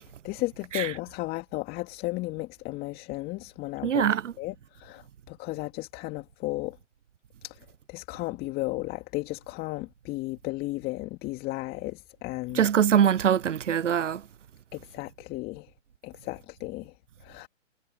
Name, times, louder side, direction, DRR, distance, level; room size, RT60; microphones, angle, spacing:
voice 1, 0.2-6.8 7.4-12.7 14.7-15.7 16.0-17.5, left 20 dB, 25° left, 2.3 m, -34 dB
voice 2, 3.8-4.2 12.6-14.2, right 8 dB, 80° right, 0.8 m, -22 dB
hypercardioid pair, 130°, 36 cm